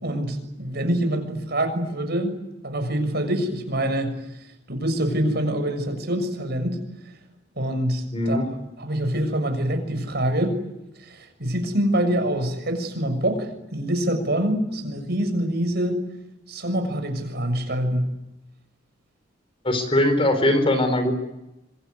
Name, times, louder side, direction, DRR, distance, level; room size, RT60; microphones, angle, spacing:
voice 1, 0.0-2.4 2.6-4.2 4.7-6.8 7.6-8.4 8.8-10.5 11.0-16.0 16.5-18.1, right 1 dB, 60° right, 6 dB, 6.8 m, -25 dB
voice 2, 8.1-8.5 19.6-21.1, left 1 dB, 30° left, 9 dB, 4.5 m, -21 dB
26.0 x 24.0 x 9.7 m, 0.93 s
head